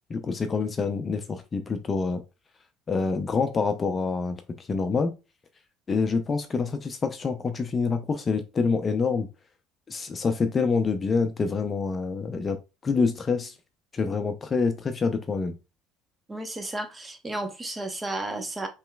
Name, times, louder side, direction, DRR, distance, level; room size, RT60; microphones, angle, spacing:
voice 1, 0.1-2.2 2.9-5.1 5.9-9.3 9.9-12.6 12.8-13.5 13.9-15.5, left 4 dB, 30° left, 0.5 m, -26 dB
voice 2, 16.3-18.7, right 2 dB, 20° right, 1.0 m, -33 dB
5.5 x 3.1 x 2.3 m
supercardioid pair, 95°, 0 cm